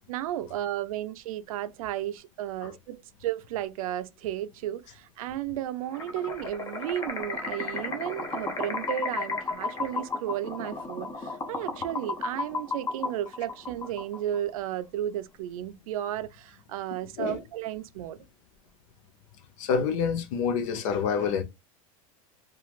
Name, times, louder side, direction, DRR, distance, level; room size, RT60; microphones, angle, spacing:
voice 1, 0.0-18.2, right 12 dB, 75° right, 0.4 m, -33 dB
sound 1, 5.9-14.4, left 4 dB, 15° left, 0.6 m, -34 dB
voice 2, 19.6-21.4, left 6 dB, 65° left, 0.7 m, -27 dB
3.0 x 2.4 x 2.4 m
supercardioid pair, 135°, 18 cm